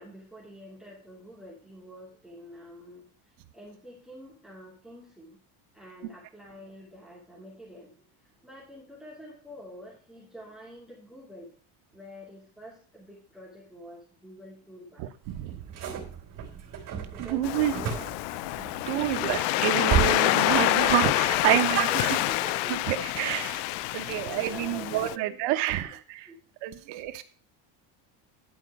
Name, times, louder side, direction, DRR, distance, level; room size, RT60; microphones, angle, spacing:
voice 1, 0.0-5.4 5.7-11.5 11.9-15.1 15.5-15.8 17.1-18.2 18.7-19.4 21.0-22.8 23.9-25.9 26.3-26.4, equal, ahead, -6 dB, 2.7 m, -47 dB
voice 2, 15.0-15.6 17.2-17.7 18.9-22.2 22.9-23.6 23.9-26.3 26.6-27.2, right 14 dB, 75° right, 9 dB, 1.1 m, -28 dB
sound 1, 15.2-19.5 19.9-20.3 20.5-21.0 21.3-22.6, right 8 dB, 50° right, 3.1 m, -33 dB
Waves surf, 17.4-25.2, left 17 dB, 70° left, 0.5 m, -27 dB
11.0 x 5.0 x 6.0 m, 0.39 s
cardioid pair, 175°, 43 cm